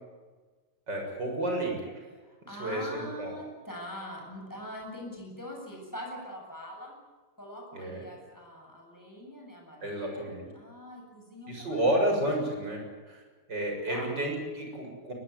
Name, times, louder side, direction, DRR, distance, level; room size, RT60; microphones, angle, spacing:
voice 1, 0.9-1.9 2.5-3.3 7.7-8.0 9.8-10.5 11.5-12.8 13.1-13.2 13.5-15.1, right 1 dB, 55° right, 1 dB, 7.6 m, -31 dB
voice 2, 2.2-6.9 7.4-10.3 10.5-11.9 13.9-14.1, equal, 10° left, 0 dB, 8.0 m, -43 dB
23.0 x 20.5 x 9.6 m, 1.4 s
omnidirectional pair, 2.2 m